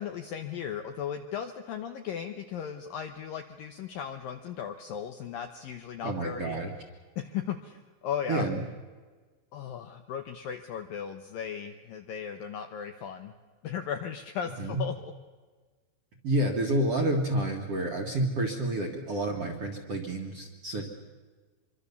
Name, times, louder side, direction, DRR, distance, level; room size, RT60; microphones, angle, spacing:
voice 1, 0.0-6.6 7.2-8.5 9.5-13.3 13.6-15.1, left 8 dB, 75° left, 7 dB, 2.1 m, -36 dB
voice 2, 6.0-6.7 8.3-8.6 14.6-14.8 16.2-20.9, right 1 dB, 50° right, 2 dB, 1.9 m, -29 dB
26.0 x 23.5 x 7.1 m, 1.4 s
omnidirectional pair, 5.2 m